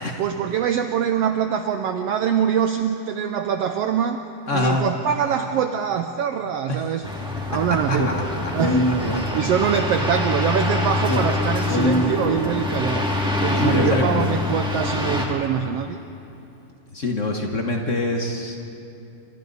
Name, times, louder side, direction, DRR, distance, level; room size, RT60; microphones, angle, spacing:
voice 1, 0.2-4.2 4.5-7.1 7.5-8.1 8.5-13.1 13.4-16.0, right 8 dB, 75° right, 7 dB, 1.4 m, -24 dB
voice 2, 4.5-4.8 6.7-6.8 7.9-8.6 8.9-9.0 13.6-14.3 16.9-18.6, left 2 dB, 85° left, 1 dB, 0.6 m, -25 dB
sound 1, 7.0-15.3, left 2 dB, ahead, 1.7 m, -25 dB
Speech, 7.9-9.8 11.0-12.8, equal, 15° left, 0.9 m, -24 dB
27.5 x 25.5 x 4.1 m, 2.7 s
omnidirectional pair, 3.5 m